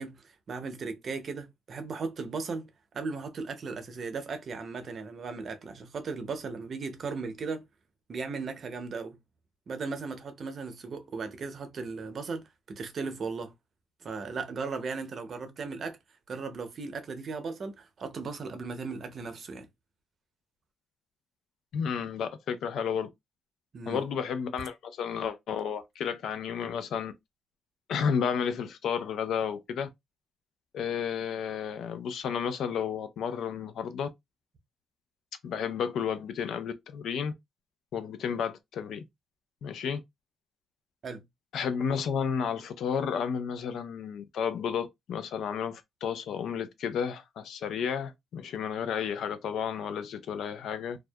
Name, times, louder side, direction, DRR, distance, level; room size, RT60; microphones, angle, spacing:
voice 1, 0.0-7.7 8.1-9.2 9.7-13.5 14.0-16.0 16.3-19.7 23.7-24.0 41.0-41.2, right 4 dB, 50° right, 0.6 m, -37 dB
voice 2, 21.7-23.1 23.9-27.1 27.9-29.9 30.7-34.1 35.4-37.3 37.9-39.0 39.6-40.0 41.5-51.0, left 7 dB, 70° left, 0.4 m, -32 dB
2.6 x 2.3 x 2.3 m
cardioid pair, 90°, 0 cm